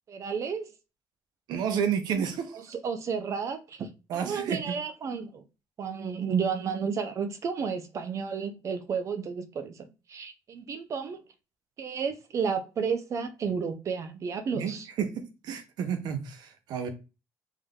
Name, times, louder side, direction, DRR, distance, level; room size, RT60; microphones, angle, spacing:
voice 1, 0.1-0.7 2.5-5.4 5.8-11.2 11.8-14.9, right 6 dB, 45° right, 0.6 m, -32 dB
voice 2, 1.5-2.6 4.1-4.8 14.5-14.7 15.0-16.9, right 7 dB, 75° right, 0.8 m, -30 dB
3.6 x 2.6 x 3.6 m
cardioid pair, 135°, 7 cm